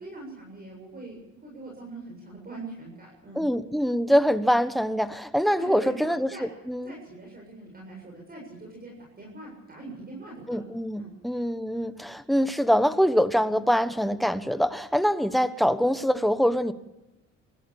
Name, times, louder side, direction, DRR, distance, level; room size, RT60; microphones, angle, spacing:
voice 1, 0.0-3.5 5.5-6.5 6.8-10.6 11.0-11.2, right 2 dB, 30° right, -1 dB, 7.7 m, -42 dB
voice 2, 3.3-6.9 10.5-16.7, equal, ahead, 11 dB, 1.2 m, -24 dB
24.0 x 15.0 x 7.2 m, 0.98 s
cardioid pair, 90°, 30 cm